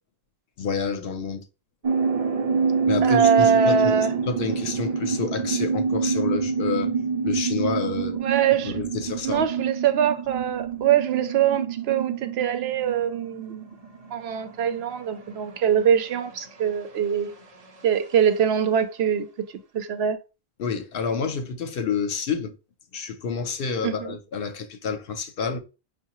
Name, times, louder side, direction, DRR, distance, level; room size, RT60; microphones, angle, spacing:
voice 1, 0.6-1.4 2.9-6.9 7.2-8.2 8.5-9.5 20.6-22.5 22.9-25.6, left 5 dB, 65° left, 0.8 m, -29 dB
sound 1, 1.8-17.9, right 5 dB, 45° right, 0.7 m, -27 dB
voice 2, 3.0-4.1 8.2-8.8 9.2-13.7 14.1-17.3 17.8-19.3 19.7-20.2 23.8-24.2, right 8 dB, 90° right, 0.9 m, -23 dB
5.5 x 2.2 x 2.9 m
omnidirectional pair, 1.0 m